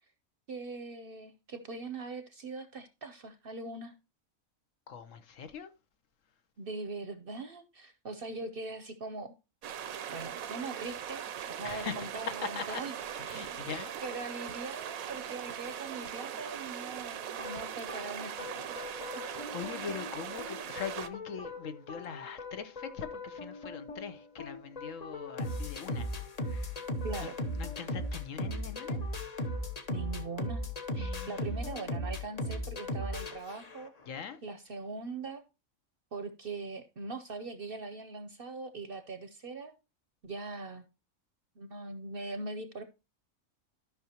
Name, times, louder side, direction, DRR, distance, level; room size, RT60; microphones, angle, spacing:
voice 1, 0.5-3.9 6.6-9.3 10.1-12.9 14.0-19.0 27.0-27.3 29.9-30.7 31.0-33.9 34.4-35.4 36.1-39.7 40.2-40.9 41.6-42.8, right 3 dB, 50° right, 0.8 m, -41 dB
voice 2, 4.9-5.7 11.6-12.8 13.1-13.9 19.5-26.7 27.2-29.0 31.0-31.6 34.1-34.4, left 6 dB, 70° left, 1.2 m, -42 dB
sound 1, 9.6-21.1, right 9 dB, 80° right, 1.2 m, -40 dB
sound 2, 17.4-34.0, left 1 dB, 35° left, 0.8 m, -38 dB
13.0 x 5.8 x 2.9 m
omnidirectional pair, 1.4 m